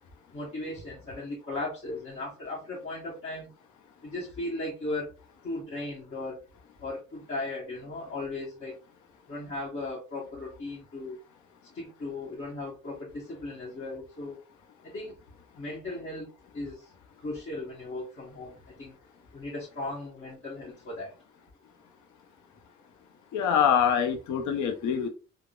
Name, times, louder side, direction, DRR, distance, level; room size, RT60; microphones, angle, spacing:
voice 1, 0.3-3.5 4.0-5.1 5.4-6.5 6.8-8.7 9.3-11.2 11.7-14.4 14.8-15.2 15.5-16.9 17.2-18.9 19.3-21.1, left 2 dB, 45° left, -6 dB, 1.1 m, -37 dB
voice 2, 23.3-25.1, left 8 dB, 70° left, 5 dB, 0.6 m, -24 dB
3.5 x 2.0 x 2.3 m, 0.33 s
cardioid pair, 90°, 30 cm